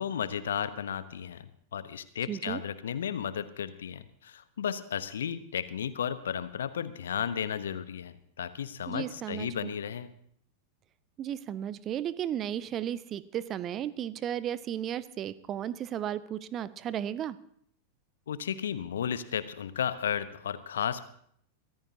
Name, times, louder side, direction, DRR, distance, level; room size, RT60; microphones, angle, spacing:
voice 1, 0.0-10.1 18.3-21.1, left 8 dB, 65° left, 14 dB, 0.9 m, -34 dB
voice 2, 2.3-2.6 8.9-9.7 11.2-17.4, right 10 dB, 30° right, 18 dB, 0.6 m, -34 dB
24.0 x 14.5 x 2.8 m, 0.65 s
figure-of-eight pair, 90°, 0 cm